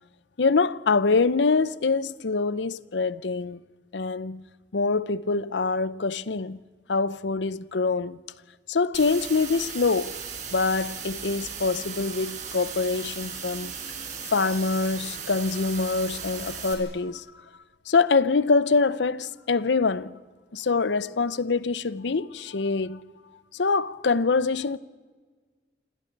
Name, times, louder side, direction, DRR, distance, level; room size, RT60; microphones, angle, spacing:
voice 1, 0.4-3.6 3.9-4.5 4.7-6.6 6.9-8.2 8.7-10.2 10.5-13.7 14.2-17.3 17.9-20.1 20.5-23.0 23.5-24.8, left 4 dB, 85° left, 0.7 m, -25 dB
sound 1, 8.9-16.7, right 6 dB, 45° right, 4.5 m, -37 dB
27.5 x 26.5 x 4.7 m
head